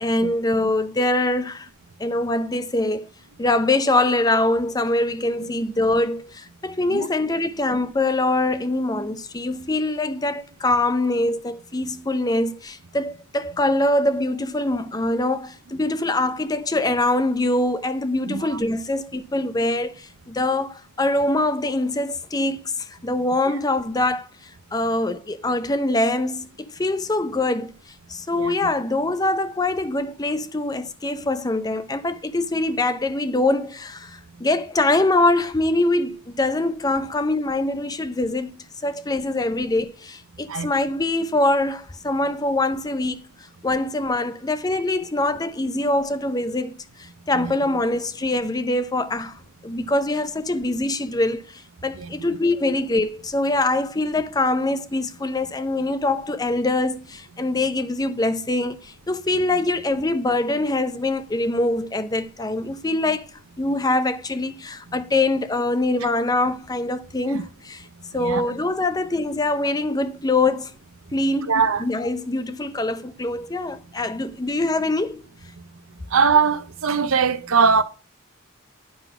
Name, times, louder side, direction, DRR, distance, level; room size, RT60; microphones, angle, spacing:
voice 1, 0.0-1.7 2.0-3.0 3.4-27.7 28.1-43.2 43.6-63.3 63.6-67.9 68.1-70.7 71.1-71.5 71.8-75.2, left 2 dB, 20° left, 0.5 m, -23 dB
voice 2, 18.3-18.6 28.3-28.5 40.5-40.7 47.3-47.5 52.0-52.3 67.3-67.4 68.1-68.4 71.5-71.8 76.1-77.8, right 5 dB, 80° right, 0.8 m, -21 dB
9.8 x 3.9 x 5.9 m
head